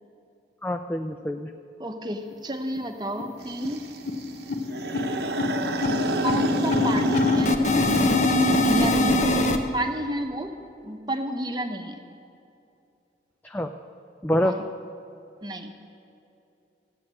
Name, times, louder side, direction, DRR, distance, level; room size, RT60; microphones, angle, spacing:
voice 1, 0.6-1.5 13.4-13.7 14.2-14.6, equal, 10° left, 5 dB, 0.4 m, -26 dB
voice 2, 1.8-3.8 6.2-7.6 8.0-10.5 10.8-12.0 14.4-14.6 15.4-15.7, right 1 dB, 25° right, 5 dB, 0.9 m, -31 dB
sound 1, 2.3-2.4 2.7-2.8 3.2-3.4 3.6-9.6, left 2 dB, 40° left, 0.9 m, -23 dB
sound 2, 3.4-7.6, right 3 dB, 65° right, 0.9 m, -32 dB
15.0 x 9.2 x 7.5 m, 2.7 s
head